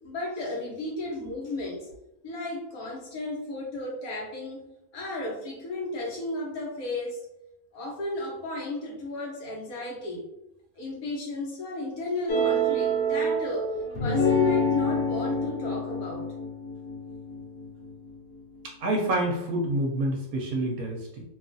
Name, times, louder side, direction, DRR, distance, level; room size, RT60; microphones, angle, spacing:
voice 1, 0.0-1.9 2.2-7.2 7.7-10.3 10.8-13.7 14.0-16.3, left 2 dB, 70° left, -3 dB, 1.2 m, -34 dB
sound 1, 12.3-18.4, equal, 90° left, 1.2 m, -27 dB
voice 2, 18.8-21.2, right 1 dB, 75° right, 0 dB, 1.0 m, -27 dB
2.9 x 2.3 x 2.5 m, 0.90 s
omnidirectional pair, 1.6 m